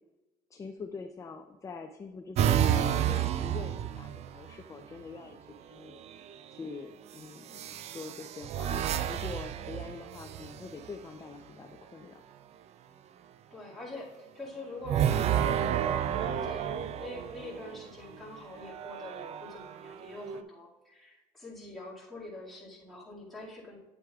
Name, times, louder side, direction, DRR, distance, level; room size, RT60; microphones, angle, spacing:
voice 1, 0.5-5.4 5.7-12.2, left 4 dB, 20° left, 6 dB, 0.4 m, -44 dB
sound 1, 2.4-4.6 5.9-6.4 7.5-10.9 14.8-17.8 18.5-20.4, right 10 dB, 45° right, 0.4 m, -31 dB
voice 2, 13.5-23.8, left 2 dB, ahead, -6 dB, 2.1 m, -45 dB
Piano, 14.8-17.7, right 3 dB, 70° right, 2.6 m, -52 dB
9.1 x 8.0 x 2.4 m, 1.1 s
cardioid pair, 140°, 15 cm